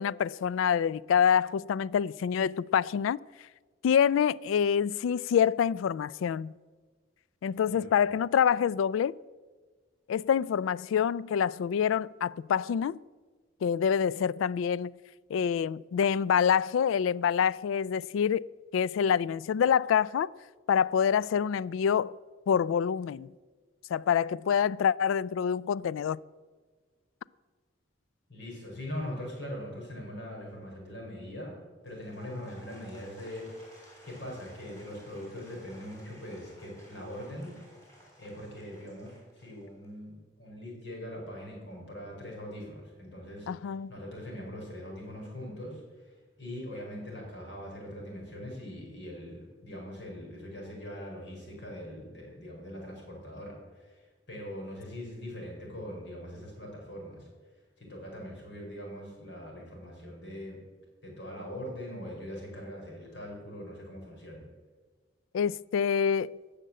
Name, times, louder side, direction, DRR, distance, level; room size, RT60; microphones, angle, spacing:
voice 1, 0.0-3.2 3.8-6.5 7.4-9.2 10.1-13.0 13.6-15.0 15.3-18.5 18.7-20.3 20.7-22.1 22.5-23.3 23.9-26.2 43.5-43.9 65.3-66.4, left 7 dB, 90° left, 0.3 m, -26 dB
voice 2, 28.3-31.6 31.8-33.5 34.0-37.6 38.2-57.3 57.8-60.6 61.0-64.4, equal, 65° left, 5.1 m, -42 dB
Applause / Crowd, 31.8-40.0, equal, 15° left, 3.8 m, -56 dB
17.5 x 6.7 x 7.5 m
head